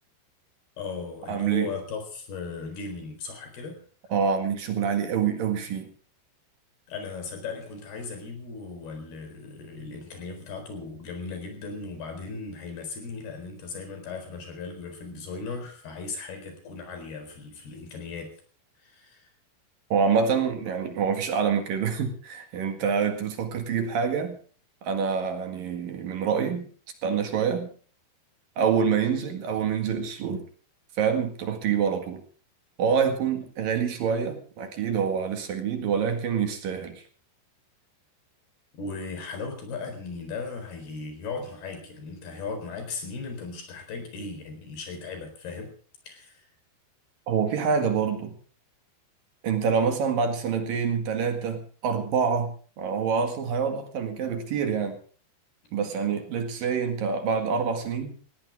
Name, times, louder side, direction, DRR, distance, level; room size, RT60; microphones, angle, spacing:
voice 1, 0.8-3.8 6.9-18.3 18.8-19.3 38.7-45.7 46.1-46.4, left 4 dB, 60° left, 6 dB, 6.1 m, -37 dB
voice 2, 1.3-1.7 4.1-5.9 19.9-24.4 24.8-26.7 27.0-27.7 28.6-30.5 31.0-32.2 32.8-37.0 47.3-48.4 49.4-55.0 55.7-58.2, right 6 dB, 55° right, 7 dB, 3.2 m, -26 dB
19.5 x 17.0 x 3.6 m, 0.41 s
omnidirectional pair, 5.2 m